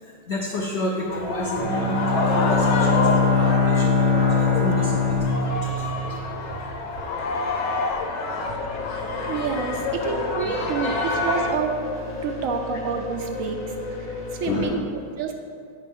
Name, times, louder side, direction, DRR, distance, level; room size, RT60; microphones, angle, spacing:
voice 1, 0.0-5.8 10.3-11.5 13.2-13.5 14.4-14.9, left 1 dB, 70° left, -1 dB, 0.6 m, -31 dB
sound 1, 1.1-11.6, left 3 dB, 85° left, 1.4 m, -28 dB
Bowed string instrument, 1.6-6.6, left 3 dB, 15° right, 0.3 m, -22 dB
voice 2, 8.3-8.7 9.2-11.7 12.2-13.6 14.0-15.3, right 6 dB, 75° right, 4 dB, 0.7 m, -29 dB
sound 2, 8.5-14.6, left 4 dB, 50° left, 1.1 m, -34 dB
9.1 x 5.2 x 3.5 m, 2.3 s
omnidirectional pair, 1.9 m